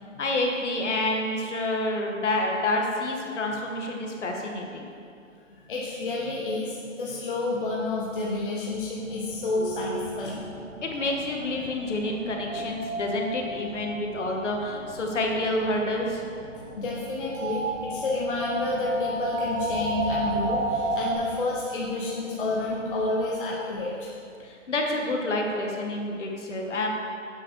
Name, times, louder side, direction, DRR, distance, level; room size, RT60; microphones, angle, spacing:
voice 1, 0.2-4.9 10.8-16.3 24.4-26.9, left 1 dB, 65° left, 1 dB, 1.7 m, -28 dB
voice 2, 5.7-10.4 11.6-11.7 16.7-24.1, left 2 dB, 40° left, -4 dB, 1.2 m, -29 dB
sound 1, 9.0-21.1, right 1 dB, 85° right, 2.6 m, -33 dB
9.6 x 7.7 x 4.7 m, 2.4 s
hypercardioid pair, 170°, 39 cm